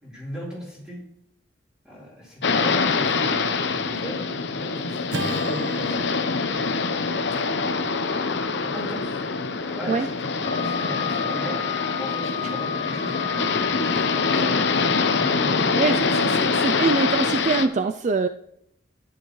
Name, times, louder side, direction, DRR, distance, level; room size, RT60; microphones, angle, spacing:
voice 1, 0.0-1.0 1.8-6.2 8.5-9.2 9.5-11.6 11.9-16.7, equal, 5° right, -5 dB, 3.6 m, -38 dB
sound 1, 2.4-17.7, left 4 dB, 75° left, 0.7 m, -24 dB
Acoustic guitar / Strum, 5.1-9.5, equal, 90° right, 0.9 m, -36 dB
Wind instrument woodwind instrument, 10.4-15.6, left 9 dB, 25° left, 0.6 m, -32 dB
voice 2, 15.8-18.3, right 4 dB, 40° right, 8 dB, 0.3 m, -24 dB
10.5 x 10.0 x 3.1 m, 0.74 s
head